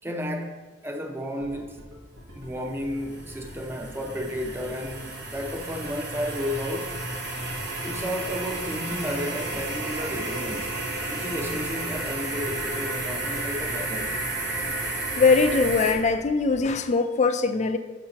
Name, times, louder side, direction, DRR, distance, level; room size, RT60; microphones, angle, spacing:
voice 1, 0.0-1.8 2.3-7.0 7.8-14.1, equal, 10° right, 0.6 m, -33 dB
sound 1, 1.4-16.7, equal, 80° right, 1.3 m, -47 dB
sound 2, 2.1-15.9, right 2 dB, 60° right, 1.2 m, -32 dB
voice 2, 15.2-17.8, left 4 dB, 40° left, 0.4 m, -21 dB
8.0 x 6.6 x 2.9 m
head